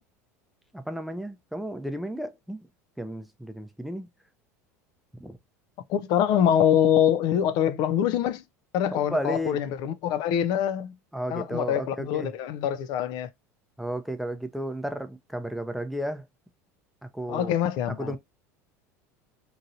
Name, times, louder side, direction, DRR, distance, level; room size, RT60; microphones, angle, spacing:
voice 1, 0.7-2.7 3.0-4.1 5.2-5.4 8.9-9.6 11.1-12.3 13.8-16.2 17.0-17.5 18.0-18.2, equal, ahead, 0.6 m, -33 dB
voice 2, 5.9-8.4 8.7-10.9 11.3-13.3 17.3-18.2, left 9 dB, 55° left, 0.5 m, -24 dB
3.0 x 2.6 x 2.6 m
hypercardioid pair, 80°, 9 cm